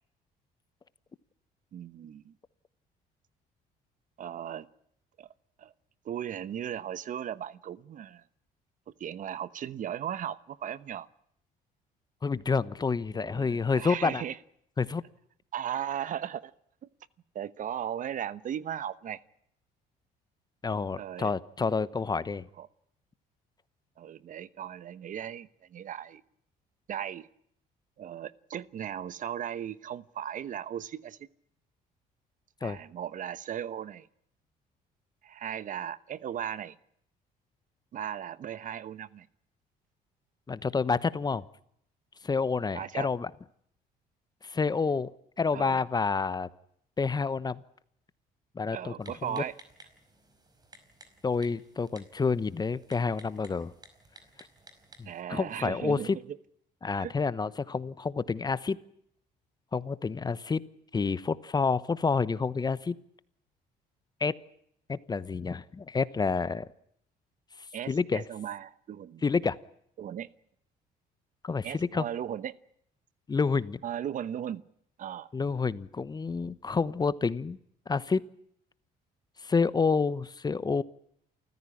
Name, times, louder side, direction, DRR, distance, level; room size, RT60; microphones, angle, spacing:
voice 1, 1.7-2.3 4.2-4.7 5.2-5.3 5.6-5.7 6.0-8.2 9.0-11.1 13.1-14.4 15.5-16.5 16.8-16.9 17.3-19.2 20.9-21.3 22.6-22.7 24.0-26.2 26.9-27.3 28.0-31.3 32.6-34.1 35.2-36.8 37.9-39.3 42.7-43.1 45.5-45.8 48.7-49.6 55.0-56.4 56.9-57.1 67.7-69.2 70.0-70.3 71.6-72.5 73.8-74.6 75.0-75.3, right 10 dB, 50° right, 17 dB, 1.0 m, -37 dB
voice 2, 12.2-14.2 14.8-15.0 20.6-22.4 32.6-32.8 40.5-41.4 42.2-43.3 44.4-45.1 45.4-46.5 47.0-47.6 48.5-49.4 51.2-53.7 55.0-56.2 56.8-58.8 59.7-60.6 60.9-63.0 64.2-64.3 64.9-66.6 67.9-68.2 69.2-69.6 71.4-72.0 73.3-73.8 75.3-77.6 77.9-78.2 79.4-80.8, left 4 dB, 25° left, 17 dB, 1.0 m, -29 dB
Typing, 49.0-55.2, right 1 dB, 25° right, 5.1 m, -56 dB
28.5 x 15.0 x 9.9 m, 0.71 s
cardioid pair, 110°, 17 cm